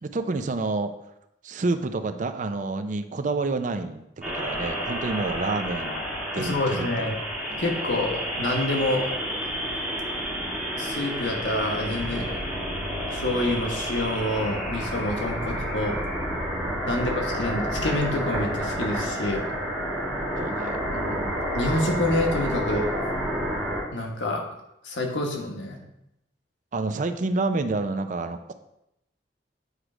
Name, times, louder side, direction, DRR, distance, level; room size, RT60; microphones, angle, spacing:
voice 1, 0.0-0.9 1.4-6.0 6.3-7.1 7.5-7.6 15.4-15.6 16.8-17.0 20.4-21.4 26.7-28.5, right 3 dB, 45° right, 9 dB, 0.5 m, -29 dB
sound 1, 4.2-23.8, equal, 5° right, 1.5 m, -30 dB
voice 2, 6.4-7.2 7.6-9.1 10.7-12.4 13.1-16.0 16.9-19.5 21.5-22.9 23.9-24.4 24.8-25.8, left 1 dB, 90° left, 1 dB, 1.2 m, -27 dB
8.1 x 3.2 x 4.9 m, 0.84 s
head